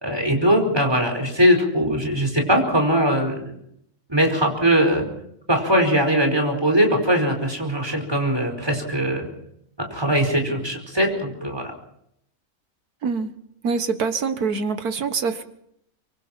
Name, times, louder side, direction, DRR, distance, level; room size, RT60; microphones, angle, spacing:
voice 1, 0.0-3.5 4.1-5.1 5.5-9.3 9.9-11.7, equal, 15° right, 3 dB, 4.9 m, -20 dB
voice 2, 13.6-15.4, right 5 dB, 85° right, 9 dB, 2.0 m, -24 dB
25.5 x 23.5 x 4.5 m, 0.74 s
omnidirectional pair, 1.6 m